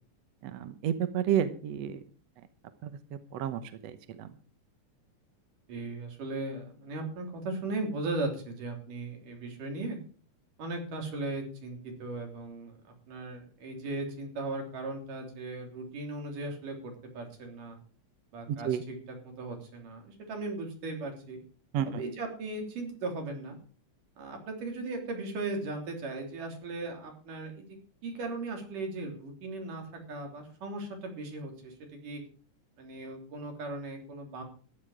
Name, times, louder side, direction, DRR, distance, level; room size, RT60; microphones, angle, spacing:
voice 1, 0.4-2.0 2.8-3.0 3.3-4.4 18.5-18.8 21.7-22.0, right 9 dB, 65° right, 11 dB, 2.0 m, -31 dB
voice 2, 5.7-10.0 10.6-12.7 13.1-17.8 18.3-19.0 19.2-21.4 21.8-23.6 24.2-29.8 30.1-31.7 32.0-32.2 32.8-34.4, right 2 dB, 90° right, 2 dB, 5.0 m, -37 dB
14.5 x 11.5 x 4.9 m, 0.42 s
omnidirectional pair, 3.6 m